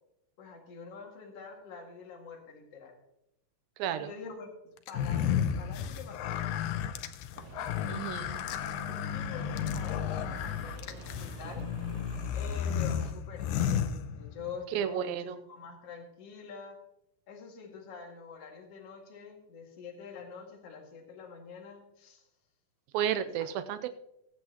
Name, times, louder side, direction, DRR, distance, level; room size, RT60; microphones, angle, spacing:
voice 1, 0.4-2.9 4.0-4.5 4.9-5.3 5.6-6.8 9.1-11.7 12.3-16.8 17.3-22.3 23.2-23.5, left 5 dB, 50° left, 0 dB, 2.8 m, -46 dB
voice 2, 3.8-4.1 7.9-8.4 14.7-15.4 22.9-23.9, right 9 dB, 85° right, 11 dB, 2.4 m, -32 dB
sound 1, 4.9-14.6, left 9 dB, 90° left, 2.4 m, -33 dB
Rain, 7.4-13.1, right 1 dB, 65° right, 1.9 m, -45 dB
21.5 x 7.8 x 2.9 m, 0.81 s
omnidirectional pair, 4.0 m